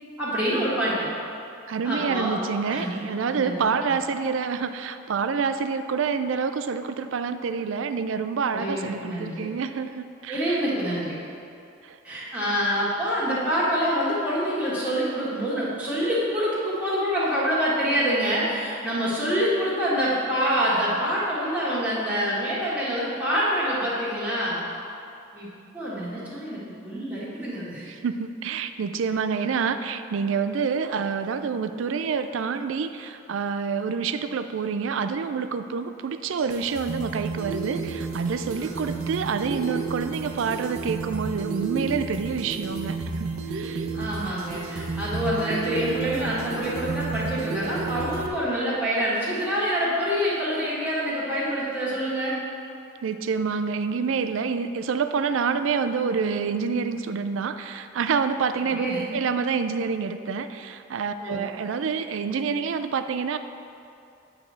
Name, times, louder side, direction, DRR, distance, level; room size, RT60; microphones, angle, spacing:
voice 1, 0.2-1.1 1.8-2.4 2.7-3.6 8.5-9.5 10.3-11.2 12.0-24.6 25.3-25.5 25.7-27.9 38.6-39.1 43.9-52.4 58.6-59.1 61.2-61.4, equal, 5° right, -10 dB, 1.8 m, -26 dB
voice 2, 1.7-10.6 11.8-12.0 27.9-43.9 53.0-58.9 59.1-63.4, right 5 dB, 65° right, 10 dB, 0.4 m, -27 dB
sound 1, 36.3-48.3, right 4 dB, 90° right, 0.7 m, -32 dB
9.2 x 3.5 x 6.5 m, 2.6 s
head